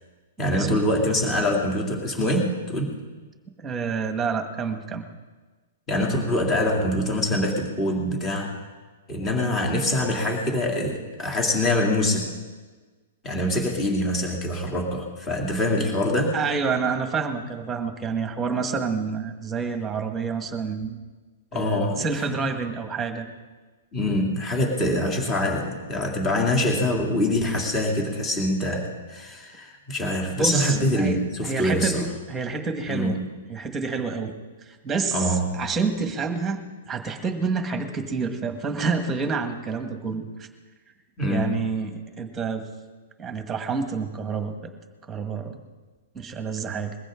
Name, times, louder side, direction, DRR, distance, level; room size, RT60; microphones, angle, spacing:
voice 1, 0.4-2.9 5.9-8.5 9.1-12.3 13.2-16.4 21.5-22.3 23.9-32.0 32.9-33.3 35.1-35.6 41.2-41.6, left 1 dB, 15° left, 0 dB, 2.8 m, -24 dB
voice 2, 3.6-5.1 16.3-21.0 21.5-23.3 30.4-31.2 31.4-33.2 33.5-34.3 34.7-36.6 36.9-40.5 41.3-42.7 43.2-44.7 45.1-45.6 46.1-47.0, right 5 dB, 10° right, 6 dB, 1.7 m, -28 dB
21.0 x 14.5 x 3.8 m, 1.3 s
hypercardioid pair, 155°, 0 cm